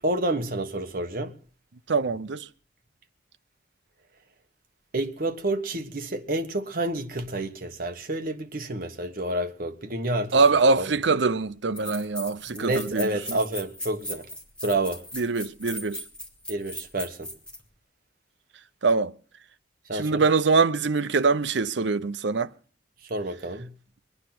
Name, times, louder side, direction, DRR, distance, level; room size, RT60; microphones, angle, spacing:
voice 1, 0.0-1.3 4.9-10.3 10.8-10.9 12.5-14.2 14.6-15.0 16.5-17.3 19.9-20.2 23.1-23.7, right 1 dB, 50° right, 1.4 m, -29 dB
voice 2, 1.9-2.5 10.3-13.4 15.1-16.0 18.8-19.1 19.9-22.5, right 4 dB, 70° right, 0.7 m, -23 dB
sound 1, 11.7-17.6, left 1 dB, 5° left, 2.6 m, -38 dB
23.0 x 9.7 x 6.0 m
head